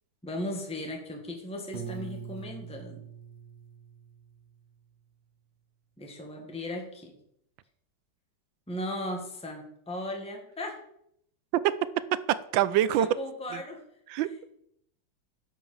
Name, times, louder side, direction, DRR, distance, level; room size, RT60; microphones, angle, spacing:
voice 1, 0.2-3.1 6.0-7.2 8.7-10.8 13.0-13.8, left 1 dB, 5° left, 1.6 m, -37 dB
Piano, 1.7-4.7, right 7 dB, 40° right, 0.9 m, -43 dB
voice 2, 12.3-13.1 13.5-13.6 14.1-14.4, right 12 dB, 80° right, 1.4 m, -25 dB
10.5 x 5.7 x 7.2 m
omnidirectional pair, 2.1 m